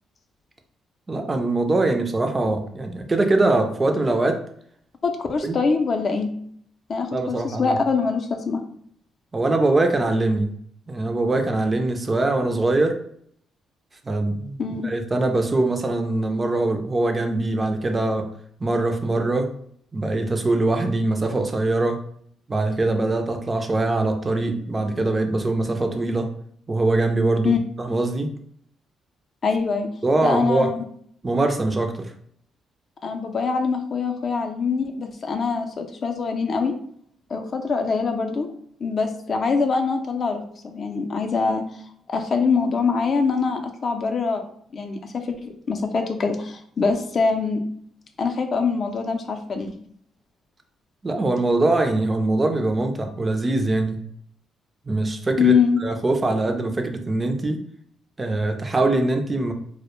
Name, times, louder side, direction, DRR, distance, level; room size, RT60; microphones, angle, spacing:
voice 1, 1.1-4.4 5.4-5.6 7.1-7.8 9.3-10.5 10.9-13.0 14.1-18.3 18.6-19.5 19.9-22.0 22.5-26.3 26.7-28.3 30.0-30.7 31.2-32.1 51.0-54.0 54.9-57.6 58.2-59.5, right 2 dB, 25° right, 5 dB, 0.3 m, -22 dB
voice 2, 5.0-6.3 6.9-8.6 14.6-14.9 27.4-27.6 29.4-29.9 30.2-30.8 33.0-36.7 37.3-38.5 38.8-41.6 42.1-44.4 44.7-47.6 48.2-49.7 55.4-55.8, left 5 dB, 50° left, 5 dB, 0.4 m, -23 dB
2.1 x 2.0 x 2.9 m, 0.64 s
cardioid pair, 90°, 0 cm